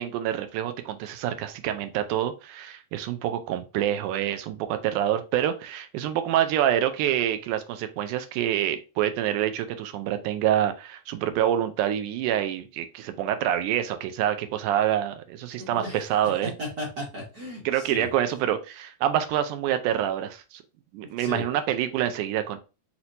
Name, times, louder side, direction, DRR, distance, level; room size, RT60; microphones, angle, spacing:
voice 1, 0.0-16.5 17.7-20.6 20.9-22.6, right 11 dB, 90° right, 9 dB, 2.1 m, -26 dB
voice 2, 15.6-16.0 16.6-18.1 21.2-21.4, equal, 50° right, -3 dB, 1.1 m, -35 dB
6.0 x 2.9 x 2.6 m, 0.31 s
omnidirectional pair, 3.5 m